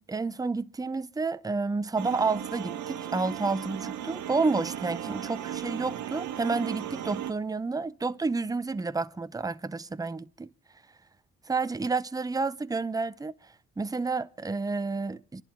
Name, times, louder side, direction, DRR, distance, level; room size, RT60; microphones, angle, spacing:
voice 1, 0.0-10.5 11.5-13.3 13.8-15.4, right 4 dB, 10° right, 0.6 m, -30 dB
sound 1, 2.0-7.3, right 10 dB, 75° right, 1.4 m, -36 dB
26.5 x 11.0 x 3.7 m
cardioid pair, 90°, 30 cm